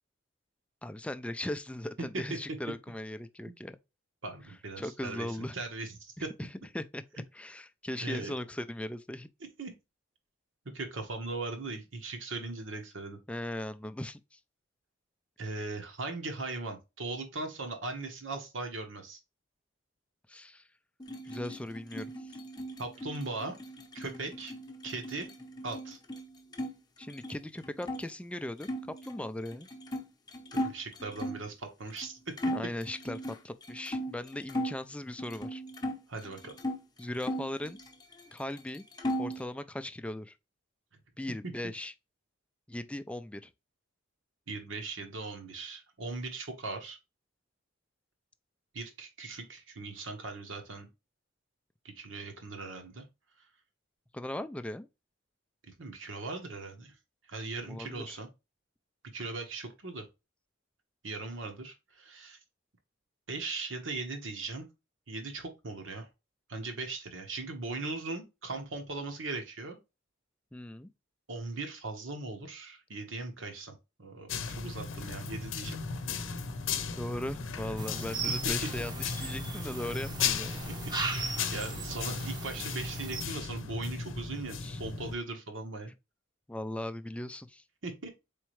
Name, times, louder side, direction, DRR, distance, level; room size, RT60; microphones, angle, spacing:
voice 1, 0.8-3.8 4.8-5.6 6.2-6.5 6.7-7.0 7.3-9.3 13.3-14.4 20.3-20.7 21.2-22.4 27.0-29.7 32.5-35.6 37.0-37.8 38.3-38.8 39.2-40.3 41.2-41.9 42.7-43.5 54.1-54.9 57.7-58.2 70.5-70.9 77.0-80.6 84.6-84.8 86.5-87.6, left 1 dB, 5° left, 0.3 m, -38 dB
voice 2, 4.2-6.3 8.0-8.3 9.6-9.7 10.6-13.2 15.4-19.2 22.8-23.6 23.9-24.5 24.8-25.3 25.6-26.0 30.5-32.3 36.1-36.5 44.5-47.0 48.7-50.9 51.8-53.0 55.7-56.9 57.3-58.3 59.1-60.1 61.0-62.4 63.3-64.6 65.1-66.1 66.5-69.8 71.3-75.8 80.6-85.9 87.8-88.1, right 3 dB, 75° right, 1.3 m, -39 dB
sound 1, 21.0-26.7 27.0-28.0 28.6-31.5 32.0-32.1 32.4-34.8 35.2-36.8 37.2-38.3 38.6-39.5, equal, 20° left, 0.7 m, -37 dB
sound 2, 74.3-85.1, left 5 dB, 85° left, 0.7 m, -36 dB
sound 3, 77.8-83.2, right 4 dB, 20° right, 0.7 m, -38 dB
4.3 x 3.5 x 3.1 m
head